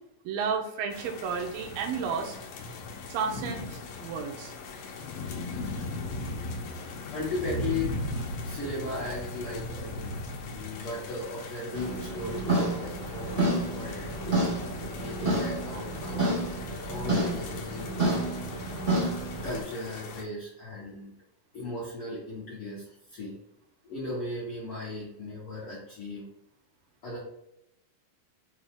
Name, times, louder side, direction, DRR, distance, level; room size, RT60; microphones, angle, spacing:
voice 1, 0.3-2.4 3.1-3.7 4.0-4.5, right 6 dB, 80° right, 2 dB, 2.3 m, -31 dB
sound 1, 0.9-20.2, left 2 dB, 75° left, 2.0 m, -39 dB
voice 2, 7.1-7.9 8.4-16.6 16.9-18.4 19.4-21.1 21.5-23.3 23.8-26.2 27.0-27.2, left 2 dB, 60° left, -8 dB, 1.5 m, -37 dB
sound 2, 11.7-19.6, right 1 dB, 35° right, 0.8 m, -29 dB
6.1 x 2.3 x 3.6 m, 0.83 s
omnidirectional pair, 4.2 m